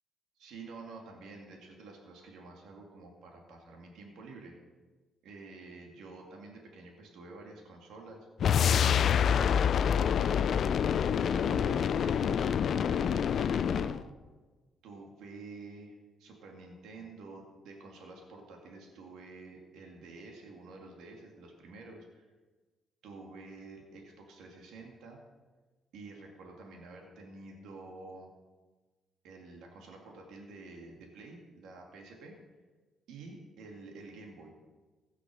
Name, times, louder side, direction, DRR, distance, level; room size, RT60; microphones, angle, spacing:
voice 1, 0.4-4.6 5.2-8.3 8.8-10.8 11.2-14.1 14.8-15.9 16.2-22.3 23.0-25.2 25.9-28.3 29.2-32.3 33.1-34.5, right 3 dB, 85° right, 1 dB, 2.1 m, -49 dB
sound 1, 8.4-14.0, left 8 dB, 60° left, 0.4 m, -27 dB
16.5 x 6.1 x 6.2 m, 1.3 s
cardioid pair, 90°, 0 cm